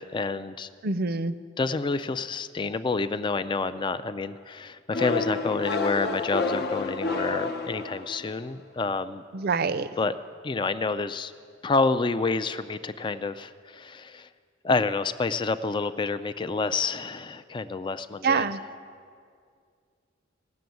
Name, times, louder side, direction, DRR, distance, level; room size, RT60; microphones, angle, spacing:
voice 1, 0.0-0.7 1.6-9.2 10.0-10.1 10.4-11.3 11.6-14.3 14.6-18.5, left 4 dB, 25° left, 12 dB, 0.3 m, -28 dB
voice 2, 0.8-1.3 9.3-9.9 18.2-18.6, right 4 dB, 50° right, 14 dB, 0.5 m, -25 dB
sound 1, 4.9-8.5, left 3 dB, 55° left, 0.8 m, -29 dB
17.0 x 6.9 x 9.3 m, 2.2 s
head